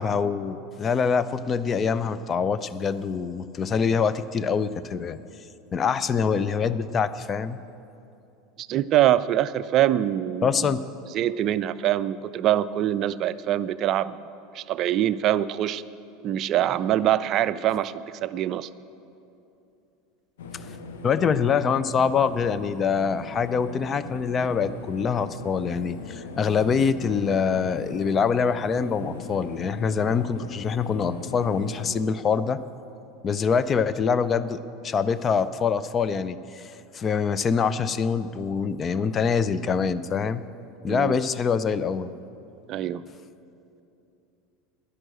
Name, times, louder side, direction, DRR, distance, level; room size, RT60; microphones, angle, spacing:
voice 1, 0.0-5.2 5.7-7.6 10.4-10.8 20.6-20.7 21.0-32.6 33.2-40.4 40.8-42.1, left 6 dB, 30° left, 14 dB, 0.5 m, -25 dB
voice 2, 8.6-10.8 11.1-14.2 14.5-15.8 16.2-18.7 40.9-41.2 42.7-43.0, right 12 dB, 40° right, 15 dB, 0.4 m, -24 dB
sound 1, 20.4-32.0, left 4 dB, 70° left, 0.9 m, -39 dB
10.5 x 10.0 x 7.8 m, 2.8 s
figure-of-eight pair, 75°, 0 cm